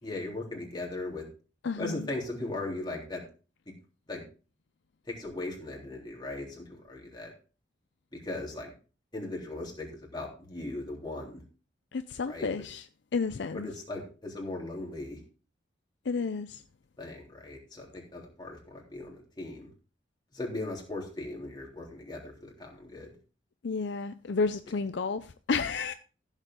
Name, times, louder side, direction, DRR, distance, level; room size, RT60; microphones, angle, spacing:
voice 1, 0.0-1.3 1.8-3.2 4.1-4.2 5.1-7.3 8.1-8.7 9.1-11.4 12.2-12.5 13.5-15.2 17.0-19.7 20.3-23.1, left 2 dB, 20° left, 3.3 m, -38 dB
voice 2, 1.6-2.1 11.9-12.8 13.1-13.7 16.1-16.6 23.6-25.9, left 4 dB, 60° left, 0.5 m, -31 dB
15.0 x 7.3 x 3.7 m
head